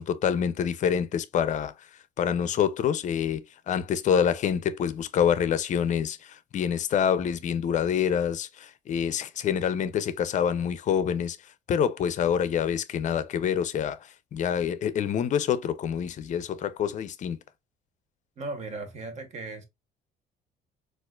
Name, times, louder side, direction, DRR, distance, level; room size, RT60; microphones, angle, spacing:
voice 1, 0.0-1.8 2.2-11.4 11.7-17.4, left 8 dB, 45° left, 0.5 m, -26 dB
voice 2, 18.4-19.6, right 3 dB, 45° right, 1.0 m, -37 dB
4.1 x 2.4 x 2.3 m
cardioid pair, 110°, 17 cm